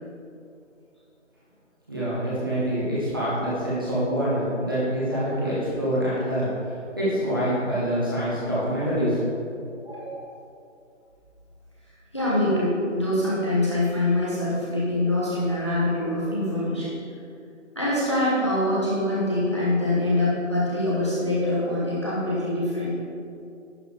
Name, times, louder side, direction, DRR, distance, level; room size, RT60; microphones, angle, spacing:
voice 1, 1.9-9.2, equal, 20° right, -10 dB, 1.5 m, -26 dB
voice 2, 9.8-10.2 12.1-16.9 17.7-22.9, left 1 dB, 25° left, -9 dB, 1.1 m, -24 dB
11.0 x 3.9 x 4.9 m, 2.5 s
figure-of-eight pair, 175°, 37 cm